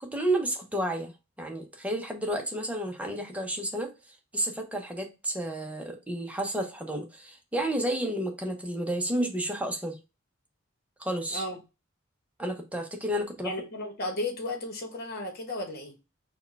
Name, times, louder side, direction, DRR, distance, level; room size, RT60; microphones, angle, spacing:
voice 1, 0.0-1.1 1.4-3.9 4.3-10.0 11.0-11.4 12.4-13.5, right 1 dB, 5° right, 3 dB, 0.8 m, -31 dB
voice 2, 13.4-15.9, left 2 dB, 50° left, 4 dB, 1.2 m, -34 dB
4.3 x 2.3 x 4.5 m, 0.28 s
head